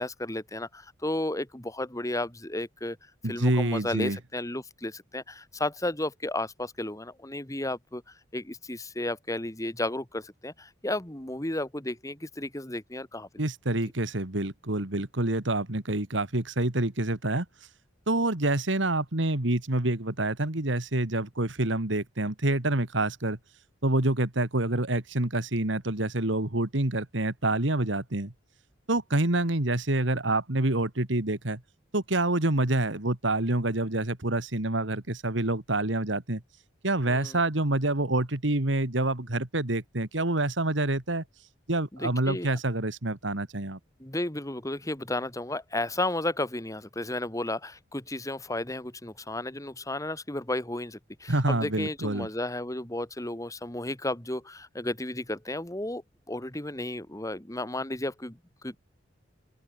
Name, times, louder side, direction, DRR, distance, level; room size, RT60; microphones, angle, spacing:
voice 1, 0.0-3.0 3.2-13.3 37.1-37.4 41.9-42.6 44.0-56.0 56.3-58.8, left 1 dB, 15° left, 2.0 m, -33 dB
voice 2, 3.2-4.2 13.4-17.5 18.1-23.4 23.8-28.3 28.9-31.6 31.9-36.4 36.8-41.2 41.7-43.8 51.3-52.3, right 2 dB, 65° right, 2.2 m, -27 dB
open air
head